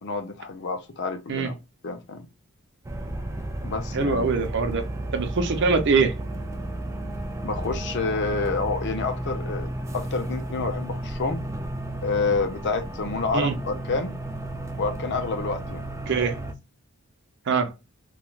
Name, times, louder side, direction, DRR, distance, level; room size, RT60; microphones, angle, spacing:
voice 1, 0.0-1.5 1.8-2.3 3.6-4.4 7.4-11.4 12.0-14.2 14.7-15.9, left 4 dB, 55° left, 0.6 m, -28 dB
sound 1, 2.8-16.5, right 1 dB, 15° right, 0.3 m, -33 dB
voice 2, 3.9-4.8 5.1-6.1 13.3-13.5 16.1-16.4 17.5-17.7, right 4 dB, 60° right, 0.6 m, -23 dB
3.1 x 2.3 x 2.3 m
head